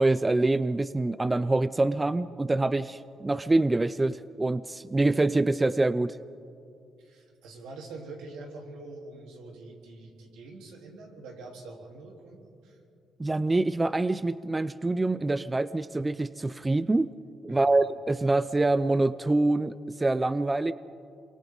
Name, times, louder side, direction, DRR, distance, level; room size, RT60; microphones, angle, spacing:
voice 1, 0.0-6.2 13.2-17.1 17.4-20.7, right 2 dB, 20° right, 15 dB, 0.5 m, -25 dB
voice 2, 7.0-12.8 17.5-17.7, right 2 dB, 90° right, -1 dB, 3.7 m, -45 dB
28.0 x 24.0 x 4.0 m, 2.5 s
supercardioid pair, 70°, 0 cm